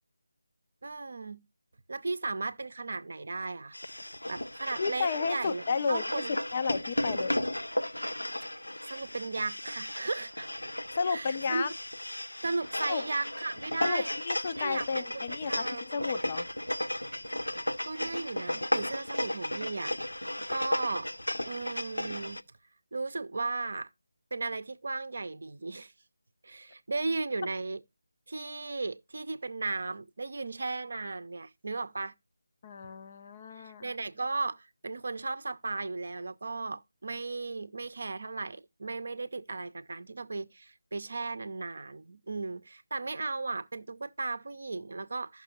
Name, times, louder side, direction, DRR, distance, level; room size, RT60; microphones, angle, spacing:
voice 1, 0.8-1.4 1.9-3.8 4.3-6.4 8.8-10.5 11.1-11.6 12.4-14.1 14.6-15.8 17.9-20.0 20.5-21.1 21.5-22.4 22.9-23.9 24.3-25.9 26.4-27.8 28.3-32.1 33.6-45.4, right 3 dB, 55° right, 0.6 m, -36 dB
sound 1, 3.7-22.4, left 1 dB, 80° left, 0.5 m, -35 dB
voice 2, 4.8-7.4 10.9-11.7 12.9-13.0 13.8-16.5 32.6-33.9, left 5 dB, 30° left, 0.5 m, -32 dB
14.0 x 6.0 x 2.8 m
figure-of-eight pair, 160°, 0 cm